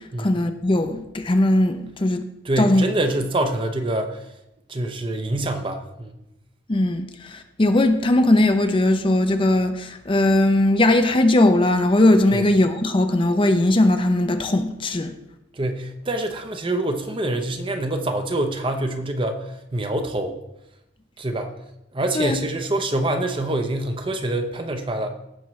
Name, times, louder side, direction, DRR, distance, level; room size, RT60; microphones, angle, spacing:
voice 1, 0.2-2.2 2.6-2.8 6.7-15.1 22.1-22.4, left 1 dB, 25° left, 7 dB, 0.5 m, -19 dB
voice 2, 2.4-4.2 4.7-6.2 12.3-12.5 15.5-19.5 19.7-20.4 21.2-21.5 21.9-25.1, right 1 dB, 25° right, 6 dB, 0.8 m, -25 dB
16.0 x 6.0 x 3.1 m, 0.88 s
head